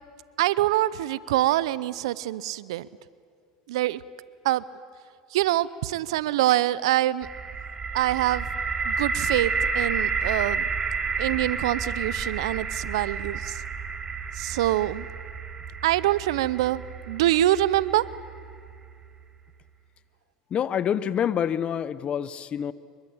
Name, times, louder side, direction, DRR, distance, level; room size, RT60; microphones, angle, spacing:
voice 1, 0.4-2.9 3.7-4.0 4.4-4.6 5.3-7.3 7.9-8.5 8.9-10.7 11.2-13.6 14.3-15.1 15.8-18.0, right 14 dB, 80° right, 19 dB, 0.7 m, -25 dB
sound 1, 7.2-19.1, right 5 dB, 25° right, 2.1 m, -31 dB
voice 2, 20.5-22.7, left 9 dB, 40° left, 16 dB, 1.0 m, -27 dB
24.5 x 22.5 x 8.8 m, 2.3 s
hypercardioid pair, 90°, 3 cm